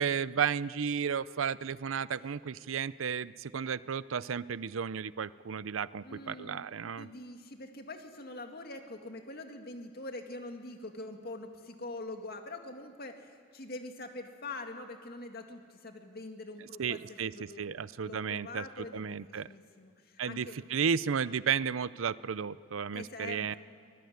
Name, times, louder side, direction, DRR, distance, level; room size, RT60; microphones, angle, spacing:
voice 1, 0.0-7.1 16.8-17.3 17.6-19.5 20.2-23.6, right 7 dB, 80° right, 18 dB, 0.5 m, -33 dB
voice 2, 6.0-6.7 7.0-20.6 22.9-23.6, left 2 dB, 50° left, 4 dB, 2.2 m, -44 dB
24.5 x 19.5 x 9.5 m, 2.2 s
head